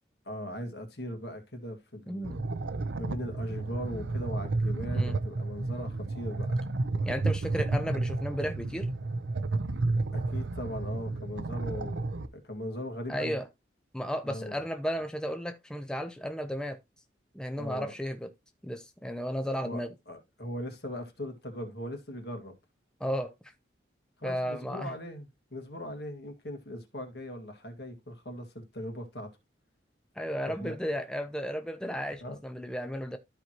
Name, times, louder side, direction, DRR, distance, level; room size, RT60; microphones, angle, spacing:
voice 1, 0.3-2.4 3.0-6.6 10.1-13.4 14.2-14.6 17.6-17.9 19.6-22.5 24.2-29.3 30.4-30.8 32.2-32.4, equal, 60° left, 2.0 m, -39 dB
voice 2, 2.1-2.4 4.9-5.2 7.0-8.9 13.1-13.4 13.9-16.8 17.3-18.3 18.6-19.9 23.0-23.3 24.2-24.9 30.2-33.2, equal, 5° left, 0.6 m, -34 dB
sound 1, 2.2-12.3, right 3 dB, 85° right, 0.7 m, -31 dB
13.0 x 4.7 x 2.9 m
head